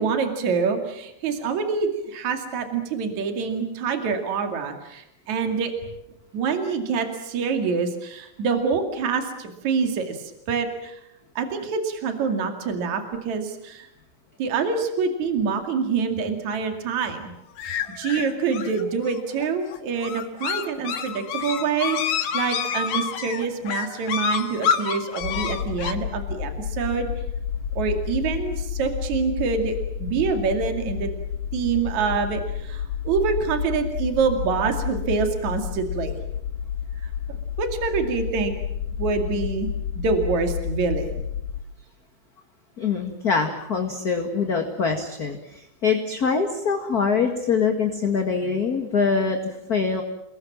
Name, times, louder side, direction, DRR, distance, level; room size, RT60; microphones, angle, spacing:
voice 1, 0.0-5.7 6.3-11.0 11.4-13.9 14.4-17.3 17.7-27.1 27.8-31.1 31.5-36.2 37.3-38.5 38.9-39.7 40.0-41.2, right 5 dB, 60° right, 5 dB, 3.6 m, -26 dB
sound 1, 17.6-25.9, left 7 dB, 65° left, 2.8 m, -28 dB
sound 2, 25.2-41.6, left 8 dB, 80° left, 2.8 m, -30 dB
voice 2, 42.8-50.0, left 5 dB, 35° left, 4 dB, 2.0 m, -24 dB
29.5 x 21.0 x 7.5 m, 0.84 s
omnidirectional pair, 3.7 m